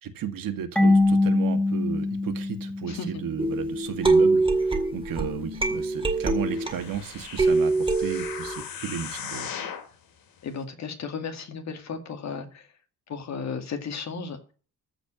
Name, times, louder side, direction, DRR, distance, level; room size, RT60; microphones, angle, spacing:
voice 1, 0.0-9.5, right 8 dB, 70° right, 2.1 m, -34 dB
Marimba xylophone / Wood, 0.8-3.5, left 2 dB, 5° left, 0.8 m, -23 dB
voice 2, 2.9-3.2 10.4-12.7 13.1-14.4, left 5 dB, 50° left, 2.3 m, -34 dB
sound 1, 3.4-7.0 7.4-8.6, right 3 dB, 15° right, 2.1 m, -24 dB
sound 2, 6.4-9.9 10.5-10.6, left 8 dB, 80° left, 2.6 m, -38 dB
14.5 x 5.1 x 8.9 m
cardioid pair, 160°, 35 cm